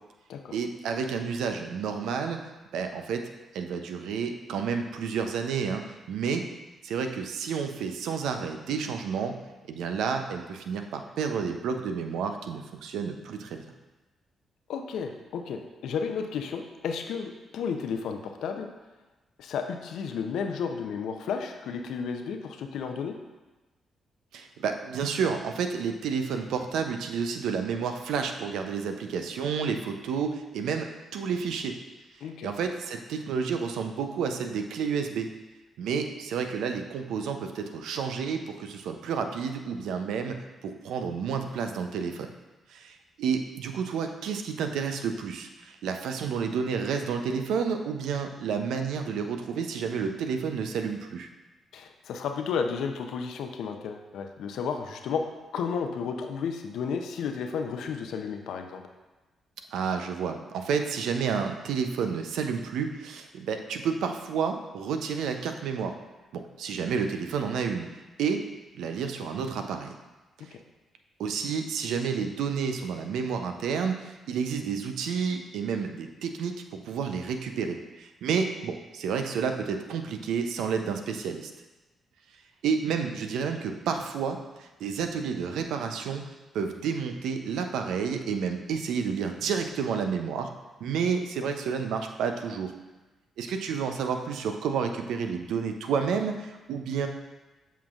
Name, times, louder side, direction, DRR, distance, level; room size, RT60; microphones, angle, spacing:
voice 1, 0.5-2.4 2.7-3.2 3.5-5.8 6.1-6.4 6.8-9.3 9.7-13.6 24.3-30.9 31.1-31.7 32.4-35.3 35.8-42.3 42.7-51.3 59.7-65.9 66.3-67.9 68.2-68.4 68.7-69.9 70.5-70.6 71.2-76.5 76.8-81.5 82.6-86.2 86.5-90.5 90.8-92.7 93.4-97.1, right 6 dB, 75° right, 6 dB, 0.5 m, -30 dB
voice 2, 14.7-18.7 19.4-23.2 32.2-32.5 51.7-58.8, left 6 dB, 75° left, 5 dB, 0.5 m, -32 dB
7.2 x 5.8 x 2.4 m, 1.2 s
hypercardioid pair, 45°, 0 cm